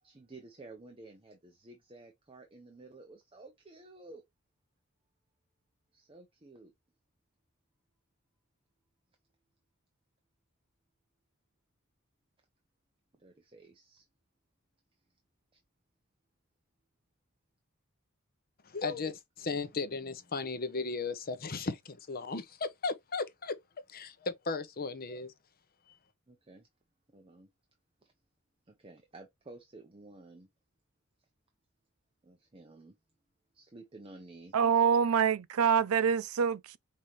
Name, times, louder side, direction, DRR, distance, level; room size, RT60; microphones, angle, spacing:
voice 1, 0.0-4.2 5.9-6.7 13.2-14.1 15.5-15.6 26.3-26.7 27.1-27.5 28.0-28.1 28.7-30.5 31.2-31.3 32.2-33.0 33.5-34.6, right 2 dB, 25° right, 0.7 m, -53 dB
voice 2, 18.6-23.5 23.9-25.3 25.9-26.0, left 4 dB, 45° left, 0.7 m, -36 dB
voice 3, 34.5-36.8, right 7 dB, 75° right, 0.4 m, -26 dB
5.5 x 2.8 x 3.1 m
head